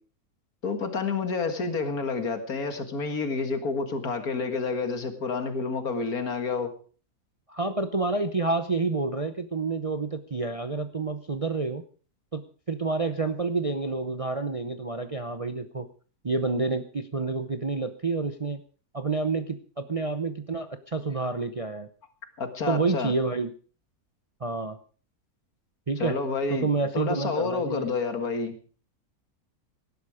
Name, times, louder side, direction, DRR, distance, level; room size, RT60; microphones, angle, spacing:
voice 1, 0.6-6.7 22.4-23.1 26.0-26.7 26.9-28.5, left 4 dB, 70° left, 8 dB, 2.3 m, -29 dB
voice 2, 7.5-11.8 12.3-12.4 12.7-15.9 16.2-18.6 18.9-21.9 22.7-23.5 24.4-24.8 25.9-26.1 26.5-27.9, right 3 dB, 30° right, 9 dB, 0.7 m, -28 dB
18.0 x 12.0 x 5.0 m, 0.41 s
omnidirectional pair, 1.6 m